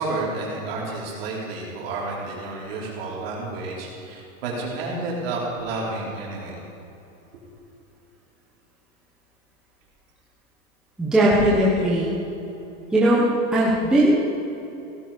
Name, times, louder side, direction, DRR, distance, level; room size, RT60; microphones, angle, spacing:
voice 1, 0.0-6.6 7.3-7.4, right 3 dB, 45° right, -4 dB, 4.4 m, -30 dB
voice 2, 11.0-12.1 12.9-14.1, right 1 dB, ahead, -7 dB, 1.0 m, -19 dB
17.0 x 15.0 x 5.1 m, 2.9 s
supercardioid pair, 180°, 41 cm